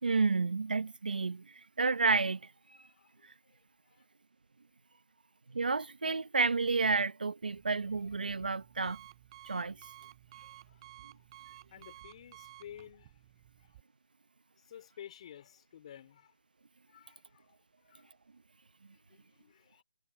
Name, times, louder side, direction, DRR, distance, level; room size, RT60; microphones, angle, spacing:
voice 1, 0.0-2.5 5.5-9.0 9.4-9.8, right 4 dB, 85° right, 1.0 m, -30 dB
voice 2, 2.7-3.3 3.9-4.0 10.4-10.8 11.7-13.1 13.6-13.7 14.6-16.3 16.9-18.1 19.1-19.8, left 10 dB, 45° left, 3.7 m, -53 dB
Alarm, 7.4-13.8, right 15 dB, 35° right, 4.2 m, -55 dB
hypercardioid pair, 150°, 5 cm